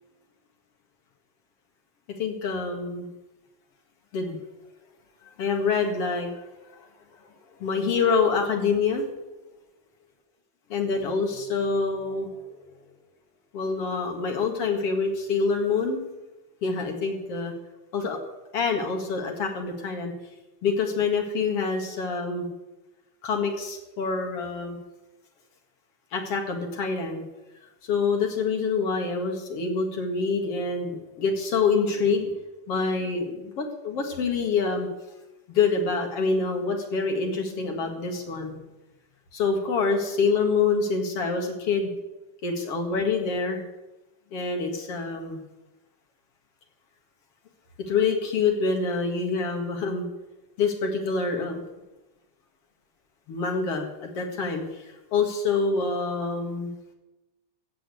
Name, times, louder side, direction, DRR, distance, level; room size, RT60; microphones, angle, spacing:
voice 1, 2.2-3.1 4.1-4.4 5.4-6.4 6.7-6.9 7.6-9.1 10.7-12.6 13.5-16.0 16.6-17.5 17.9-18.2 18.5-20.1 20.6-22.5 23.2-24.8 26.1-27.2 27.8-32.3 32.7-34.9 35.5-38.6 39.3-41.9 42.4-43.6 44.3-45.4 47.9-50.0 50.6-51.6 53.3-54.8 55.1-56.7, left 4 dB, 55° left, 3 dB, 2.7 m, -26 dB
14.5 x 7.8 x 8.5 m, 1.0 s
omnidirectional pair, 3.4 m